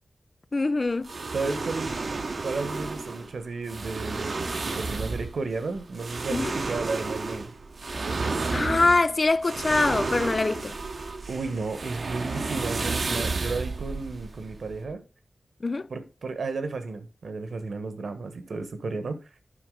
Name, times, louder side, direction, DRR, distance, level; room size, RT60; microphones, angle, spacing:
voice 1, 0.5-1.1 6.3-6.5 8.5-10.8 15.6-15.9, left 3 dB, 35° left, 0.3 m, -24 dB
sound 1, 1.0-14.9, right 3 dB, 50° right, 0.8 m, -32 dB
voice 2, 1.3-2.0 2.4-4.3 4.6-7.5 7.9-8.5 11.3-15.0 15.9-19.2, right 3 dB, 75° right, 1.2 m, -33 dB
9.8 x 5.8 x 3.8 m
wide cardioid pair, 115°, 0 cm